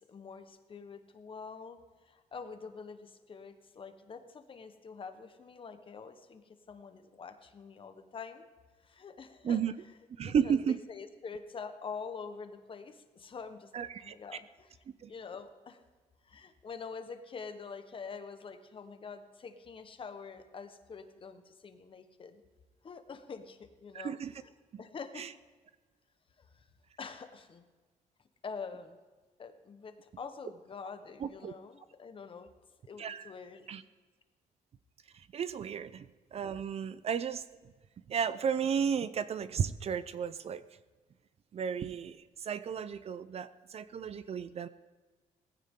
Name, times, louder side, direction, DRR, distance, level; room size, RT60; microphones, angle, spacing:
voice 1, 0.1-1.8 2.3-6.4 6.7-8.5 9.0-9.6 10.2-10.3 10.9-13.7 14.0-14.4 15.1-15.8 16.3-22.4 22.8-24.2 24.8-25.3 27.0-27.6 28.4-29.0 29.4-32.5 32.9-33.7, left 5 dB, 40° left, 8 dB, 1.2 m, -45 dB
voice 2, 9.4-9.8 10.2-10.8 13.7-14.2 15.0-15.1 23.9-24.4 24.7-24.8 25.1-25.3 31.2-31.5 33.0-33.3 33.7-33.8 35.1-37.4 38.1-40.6 41.5-44.7, right 7 dB, 50° right, 14 dB, 0.6 m, -33 dB
18.0 x 15.0 x 3.8 m, 1.4 s
cardioid pair, 120°, 14 cm